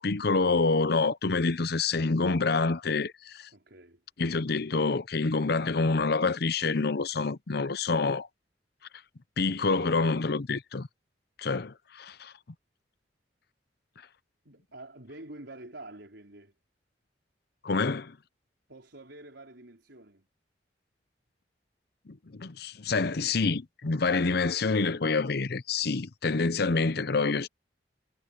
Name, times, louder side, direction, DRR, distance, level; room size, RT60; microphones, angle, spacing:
voice 1, 0.0-3.5 4.2-8.3 9.4-10.9 11.4-12.3 17.6-18.1 22.1-27.5, left 4 dB, 60° left, 0.8 m, -27 dB
voice 2, 3.5-4.0 9.5-10.0 14.4-16.5 18.7-20.3, right 2 dB, 80° right, 4.7 m, -48 dB
head